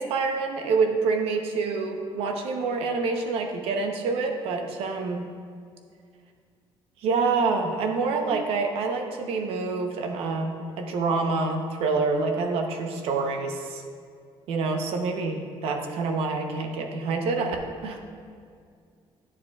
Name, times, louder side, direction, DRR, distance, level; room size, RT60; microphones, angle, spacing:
voice 1, 0.0-5.2 7.0-13.8 14.5-17.6 17.8-18.0, right 4 dB, 80° right, 4 dB, 0.8 m, -27 dB
10.5 x 7.1 x 2.4 m, 2.2 s
cardioid pair, 150°, 10 cm